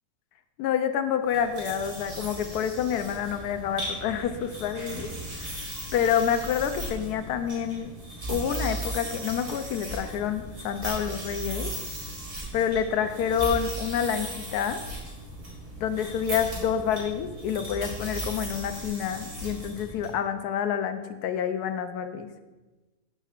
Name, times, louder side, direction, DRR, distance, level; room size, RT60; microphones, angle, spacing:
voice 1, 0.6-5.1 5.4-5.5 5.9-7.9 8.3-11.7 12.5-14.8 15.8-22.3, left 8 dB, 85° left, 9 dB, 1.1 m, -28 dB
sound 1, 1.2-20.1, right 1 dB, 85° right, 2.6 m, -37 dB
12.5 x 5.6 x 2.4 m, 1.2 s
omnidirectional pair, 1.6 m